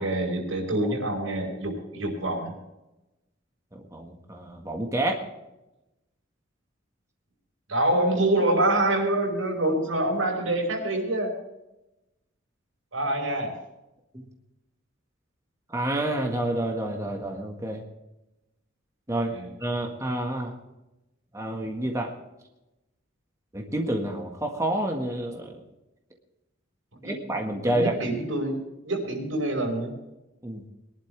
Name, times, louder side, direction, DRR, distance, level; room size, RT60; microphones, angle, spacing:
voice 1, 0.0-2.5 7.7-11.3 12.9-13.5 19.3-19.5 27.0-27.1 27.6-29.9, right 1 dB, 85° right, 2 dB, 5.5 m, -26 dB
voice 2, 3.7-5.2 14.1-14.3 15.7-17.8 19.1-19.3 19.6-20.5 21.3-22.1 23.5-25.6 27.0-28.0 30.4-30.6, right 1 dB, 15° right, 1 dB, 1.8 m, -29 dB
22.5 x 11.5 x 3.5 m, 0.95 s
head